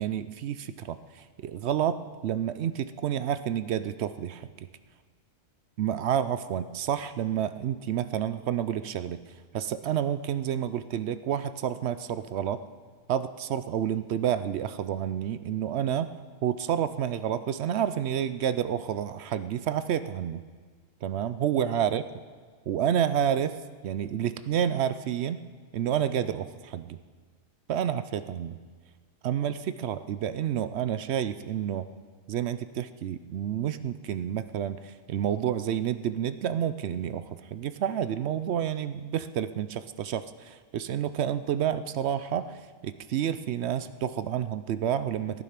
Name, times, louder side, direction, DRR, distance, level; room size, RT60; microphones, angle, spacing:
voice 1, 0.0-4.5 5.8-9.2 9.5-12.6 13.1-16.1 16.4-20.4 21.0-22.0 22.7-23.6 23.8-25.4 25.7-27.0 27.7-28.6 29.2-31.9 32.3-45.4, right 9 dB, 65° right, 13 dB, 0.7 m, -29 dB
14.5 x 9.3 x 5.8 m, 1.5 s
omnidirectional pair, 1.4 m